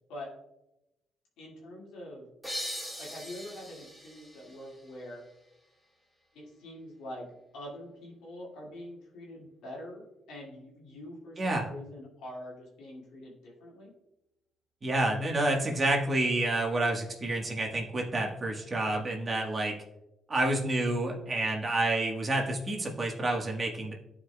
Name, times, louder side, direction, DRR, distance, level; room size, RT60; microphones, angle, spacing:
voice 1, 1.4-2.2 3.0-5.2 6.3-7.3 7.5-13.9, left 1 dB, 85° left, -4 dB, 2.2 m, -44 dB
sound 1, 2.4-5.9, equal, 5° left, 1.9 m, -41 dB
voice 2, 11.4-11.7 14.8-19.8 20.3-23.9, right 2 dB, 30° right, 0 dB, 1.5 m, -29 dB
11.5 x 4.9 x 2.3 m, 0.92 s
cardioid pair, 90°, 0 cm